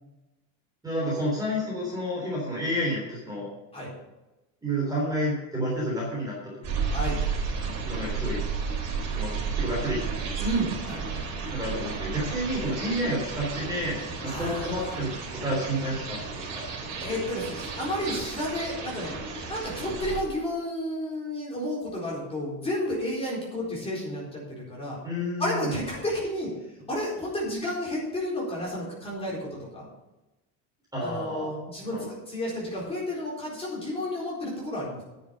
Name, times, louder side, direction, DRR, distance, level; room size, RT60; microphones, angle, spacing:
voice 1, 0.8-3.5 4.6-6.7 7.9-8.4 9.1-10.0 10.5-10.7 11.5-15.1 15.4-16.2 16.5-16.6 17.0-17.1 25.0-25.8 30.9-31.5 31.9-32.0, equal, 10° right, -4 dB, 3.5 m, -30 dB
sound 1, 6.6-20.2, right 5 dB, 45° right, 3.7 m, -33 dB
voice 2, 10.4-11.0 14.2-15.0 17.0-19.1 19.5-25.0 25.4-26.5 26.9-29.5 29.7-29.9 31.0-35.0, equal, 15° left, -5 dB, 4.2 m, -31 dB
10.5 x 7.4 x 6.5 m, 1.0 s
cardioid pair, 165°, 44 cm